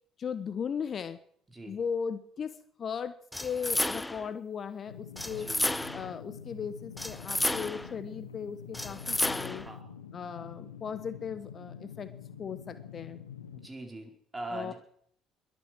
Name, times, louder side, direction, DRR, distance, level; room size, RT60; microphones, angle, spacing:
voice 1, 0.2-1.2 1.7-5.5 5.9-9.6 10.1-12.1 12.4-13.2 14.5-14.7, left 7 dB, 45° left, 13 dB, 1.0 m, -37 dB
sound 1, 3.3-4.3 5.2-6.1 7.0-7.9 8.7-9.7, left 1 dB, 10° left, 0.6 m, -32 dB
sound 2, 4.9-13.7, left 8 dB, 90° left, 1.1 m, -46 dB
voice 2, 5.4-5.7 9.4-9.9 13.5-14.7, right 2 dB, 20° right, 4 dB, 5.0 m, -42 dB
22.0 x 9.4 x 6.2 m, 0.64 s
hypercardioid pair, 55°, 0 cm